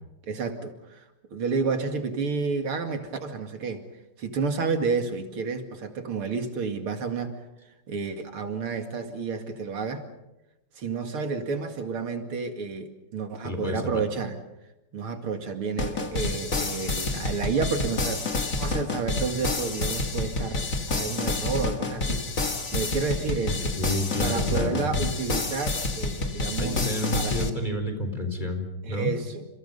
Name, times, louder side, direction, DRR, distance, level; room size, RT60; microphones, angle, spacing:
voice 1, 0.2-1.0 1.3-3.9 4.2-7.4 7.9-10.1 10.8-14.4 14.9-22.3 22.7-23.7 24.2-26.9 27.1-27.4 28.8-29.5, right 4 dB, 85° right, 6 dB, 3.1 m, -30 dB
voice 2, 13.4-14.1 23.5-25.0 26.6-29.1, left 1 dB, 20° left, 5 dB, 4.1 m, -30 dB
sound 1, 15.8-27.5, left 3 dB, 40° left, 2.5 m, -29 dB
30.0 x 28.0 x 5.5 m, 0.94 s
omnidirectional pair, 2.3 m